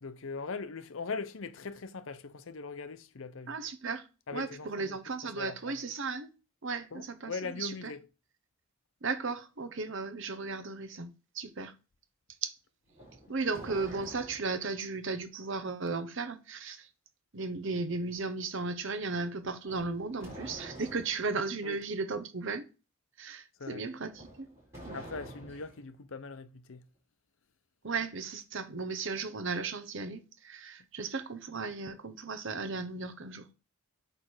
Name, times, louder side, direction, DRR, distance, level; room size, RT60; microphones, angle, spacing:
voice 1, 0.0-3.6 4.3-5.9 6.9-8.1 21.6-21.8 23.6-23.8 24.9-26.8, left 4 dB, 60° left, 0.6 m, -41 dB
voice 2, 3.5-4.0 4.3-6.3 6.6-7.3 7.6-7.7 9.0-11.7 12.4-12.5 13.3-16.9 17.3-22.7 23.2-24.5 24.8-25.0 27.8-33.5, right 4 dB, 55° right, 0.8 m, -35 dB
sound 1, 12.9-14.7 19.6-21.2 24.1-25.8, right 1 dB, 10° right, 4.2 m, -48 dB
8.7 x 3.3 x 4.4 m
head